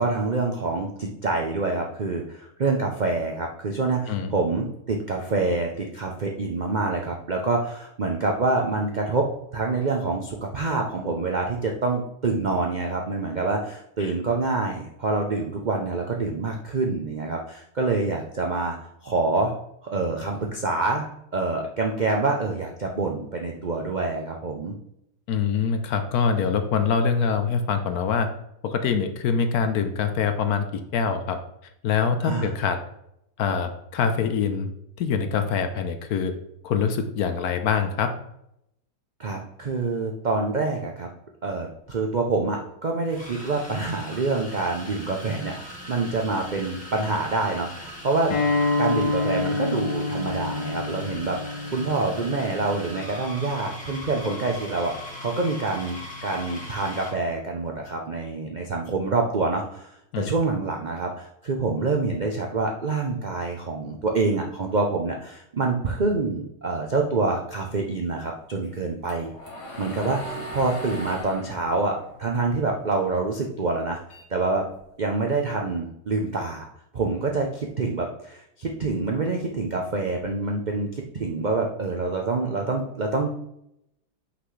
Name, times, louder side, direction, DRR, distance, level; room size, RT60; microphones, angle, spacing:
voice 1, 0.0-18.8 19.0-19.5 19.8-24.7 32.2-32.5 39.2-41.1 41.4-48.3 48.8-59.9 60.2-69.3 69.8-74.0 74.3-74.7 75.0-83.3, right 3 dB, 75° right, 1 dB, 0.4 m, -26 dB
voice 2, 25.3-28.3 28.6-31.4 31.8-32.8 33.4-34.7 35.0-36.3 36.6-38.1 60.1-60.3, left 6 dB, 70° left, 8 dB, 1.1 m, -24 dB
sound 1, 41.9-42.0 43.1-57.2, left 1 dB, 5° left, 1.6 m, -40 dB
Acoustic guitar, 48.3-53.5, left 3 dB, 90° left, 1.8 m, -28 dB
sound 2, 68.6-73.2 73.5-75.1, right 1 dB, 50° left, 1.5 m, -39 dB
5.8 x 5.8 x 3.2 m, 0.78 s
omnidirectional pair, 1.8 m